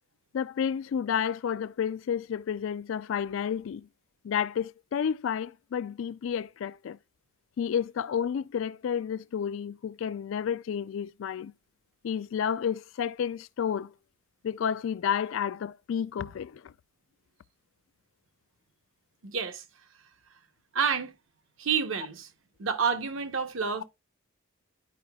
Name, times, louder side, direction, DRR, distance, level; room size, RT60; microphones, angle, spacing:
voice 1, 0.3-3.9 4.2-7.0 7.6-11.5 12.0-13.9 14.4-16.7, left 8 dB, 65° left, 0.3 m, -31 dB
voice 2, 19.2-19.6 20.7-21.1 21.6-22.3 22.6-23.8, right 6 dB, 65° right, 0.8 m, -29 dB
11.0 x 4.8 x 2.3 m
head